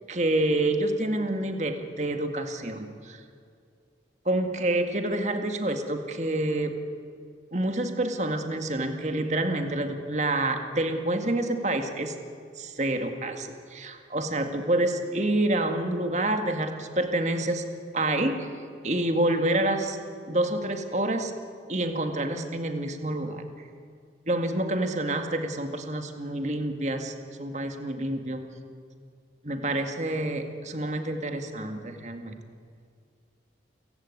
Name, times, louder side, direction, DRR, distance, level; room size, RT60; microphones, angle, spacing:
voice 1, 0.1-3.2 4.3-6.7 7.5-12.1 12.6-17.6 17.9-18.5 18.8-20.0 20.3-21.3 21.7-23.4 24.3-28.4 29.4-32.4, right 1 dB, 40° right, 6 dB, 2.0 m, -28 dB
29.5 x 16.5 x 9.7 m, 2.2 s
head